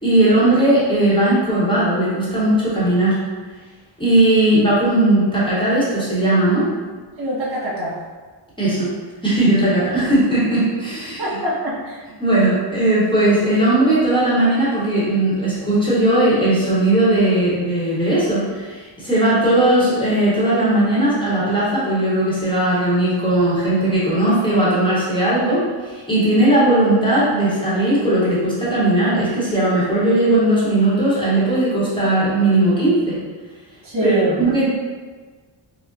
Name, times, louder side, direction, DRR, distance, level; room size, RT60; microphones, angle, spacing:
voice 1, 0.0-3.2 4.0-6.7 8.6-8.9 9.2-11.2 12.2-33.2 34.0-34.7, right 1 dB, 10° left, -9 dB, 0.9 m, -17 dB
voice 2, 7.2-8.0 11.2-12.0 33.8-34.4, right 1 dB, 90° right, -7 dB, 1.3 m, -23 dB
5.3 x 2.0 x 2.5 m, 1.4 s
wide cardioid pair, 165°, 46 cm